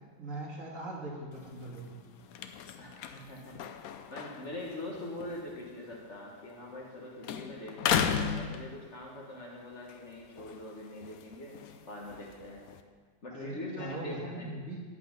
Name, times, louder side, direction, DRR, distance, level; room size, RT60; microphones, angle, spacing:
voice 1, 0.2-1.9 13.3-14.8, right 2 dB, 50° right, -3 dB, 2.0 m, -40 dB
sound 1, 1.3-7.0 7.2-9.3 9.7-12.8, left 8 dB, 65° left, 1.0 m, -37 dB
voice 2, 2.8-3.8 4.1-11.6 11.8-12.7 13.2-14.6, left 1 dB, 45° left, -2 dB, 1.8 m, -43 dB
10.5 x 8.6 x 5.2 m, 1.6 s
omnidirectional pair, 1.8 m